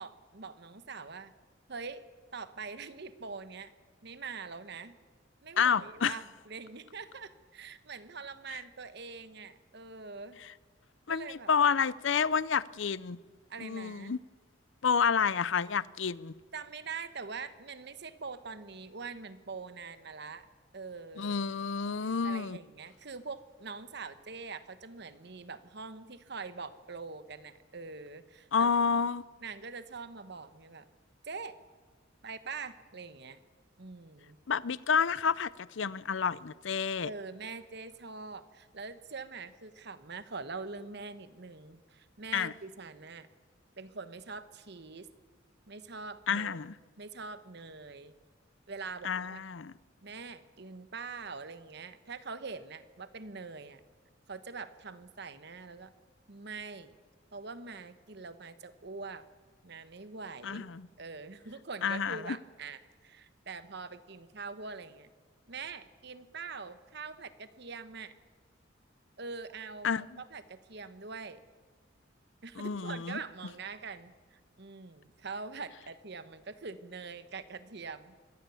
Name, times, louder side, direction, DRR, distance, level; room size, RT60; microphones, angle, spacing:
voice 1, 0.0-1.3 1.7-3.7 4.0-4.9 5.4-10.4 11.1-11.5 13.5-14.1 16.5-20.5 20.7-21.4 22.2-28.7 29.4-30.9 31.2-31.6 32.2-33.4 33.8-34.4 37.0-43.3 43.8-45.1 45.7-46.6 47.0-48.1 48.7-49.4 50.0-53.8 54.3-55.9 56.3-57.0 57.3-59.3 59.6-60.7 61.0-65.1 65.5-68.1 69.2-71.4 72.4-78.2, right 4 dB, 55° right, 1.2 m, -44 dB
voice 2, 5.6-6.2 11.1-13.2 13.6-14.2 14.8-16.3 21.2-22.6 28.5-29.2 34.5-37.1 42.3-42.5 46.3-46.7 49.0-49.7 60.4-60.9 61.8-62.4 69.8-70.2 72.6-73.2, left 6 dB, 70° left, 0.6 m, -29 dB
23.5 x 17.5 x 7.1 m
head